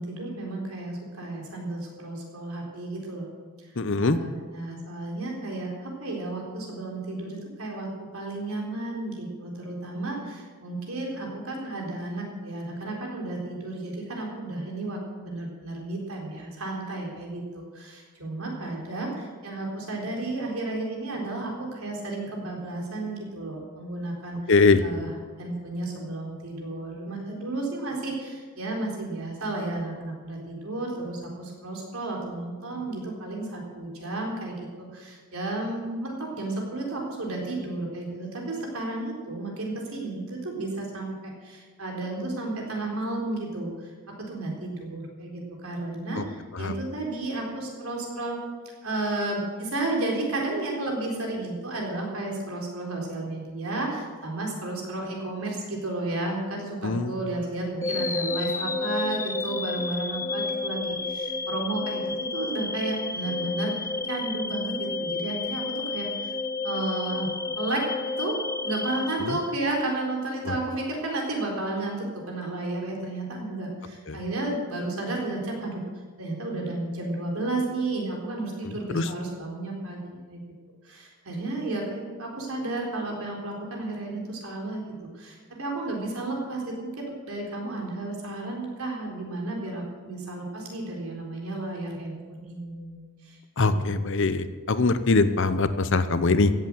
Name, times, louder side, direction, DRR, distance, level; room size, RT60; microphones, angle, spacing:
voice 1, 0.0-3.3 3.6-3.7 4.0-24.4 24.8-25.1 25.4-48.4 48.8-66.3 66.6-75.8 76.2-80.4 80.8-94.0, right 2 dB, 75° right, -1 dB, 4.1 m, -32 dB
voice 2, 3.8-4.2 24.5-24.8 46.1-46.2 46.5-46.8 56.8-57.2 69.2-69.4 70.4-70.6 74.1-74.2 78.6-79.1 93.6-96.5, left 3 dB, 55° left, 12 dB, 0.8 m, -23 dB
sound 1, 57.8-69.9, left 3 dB, 15° left, 0.4 m, -31 dB
16.0 x 8.2 x 7.7 m, 1.5 s
head